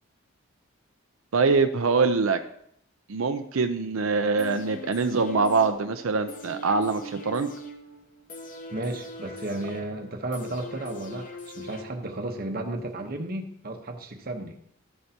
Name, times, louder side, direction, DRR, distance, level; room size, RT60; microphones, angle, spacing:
voice 1, 1.3-2.4 3.1-7.5, right 4 dB, 90° right, 7 dB, 0.6 m, -24 dB
sound 1, 4.4-12.4 12.7-12.8, left 1 dB, 40° left, 0.8 m, -42 dB
voice 2, 8.7-14.6, right 1 dB, 45° right, 4 dB, 1.0 m, -33 dB
13.0 x 7.8 x 2.8 m, 0.69 s
head